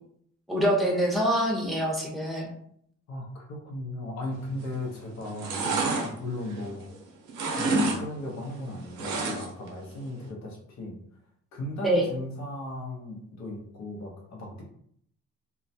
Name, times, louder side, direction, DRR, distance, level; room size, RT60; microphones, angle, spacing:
voice 1, 0.5-2.5 11.8-12.1, right 1 dB, ahead, -2 dB, 0.7 m, -25 dB
voice 2, 3.1-6.9 7.6-11.0 11.5-14.6, left 1 dB, 65° left, 0 dB, 0.7 m, -36 dB
sound 1, 4.5-4.9 5.2-7.0 7.3-8.0 8.3-9.7 10.0-10.1, right 3 dB, 80° right, 0.7 m, -29 dB
2.3 x 2.0 x 2.6 m, 0.67 s
cardioid pair, 90°, 30 cm